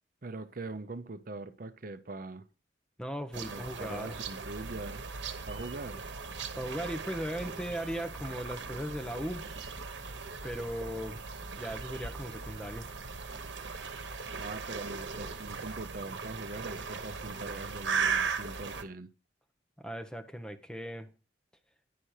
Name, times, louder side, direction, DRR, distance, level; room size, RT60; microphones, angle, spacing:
voice 1, 0.2-2.5 3.3-5.0 5.4-6.0 14.4-19.1, right 2 dB, 50° right, 0.7 m, -42 dB
voice 2, 3.0-4.2 6.6-9.4 10.4-11.2 11.5-12.9 19.8-21.1, equal, 5° left, 0.9 m, -37 dB
sound 1, 3.3-18.8, right 5 dB, 85° right, 1.1 m, -38 dB
10.5 x 4.3 x 6.4 m
head